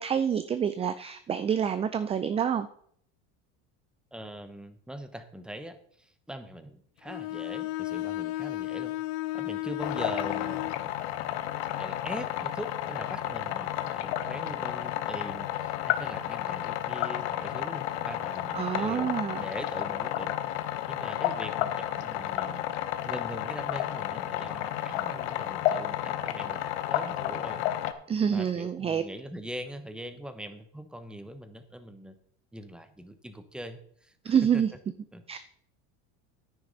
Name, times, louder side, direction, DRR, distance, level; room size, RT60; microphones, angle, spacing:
voice 1, 0.0-2.7 18.5-19.4 28.1-29.0 34.2-34.7 35.3-35.4, right 8 dB, 20° right, 12 dB, 0.4 m, -27 dB
voice 2, 4.1-8.9 9.3-11.1 11.8-20.3 20.9-22.7 23.1-27.6 28.3-32.1 32.5-34.6 35.1-35.4, equal, 5° right, 9 dB, 1.0 m, -42 dB
Bowed string instrument, 7.1-10.8, left 17 dB, 65° left, 0.7 m, -34 dB
sound 1, 9.8-27.9, left 12 dB, 80° left, 1.0 m, -32 dB
9.7 x 9.5 x 4.0 m, 0.62 s
supercardioid pair, 115°, 33 cm